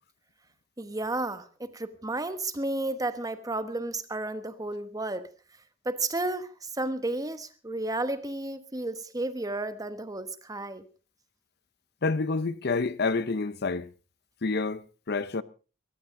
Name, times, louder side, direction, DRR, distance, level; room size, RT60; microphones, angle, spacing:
voice 1, 0.8-5.3 5.8-10.8, right 2 dB, 20° right, 1.1 m, -32 dB
voice 2, 12.0-13.9 14.4-15.4, left 3 dB, 60° left, 0.7 m, -28 dB
22.0 x 14.5 x 3.7 m
head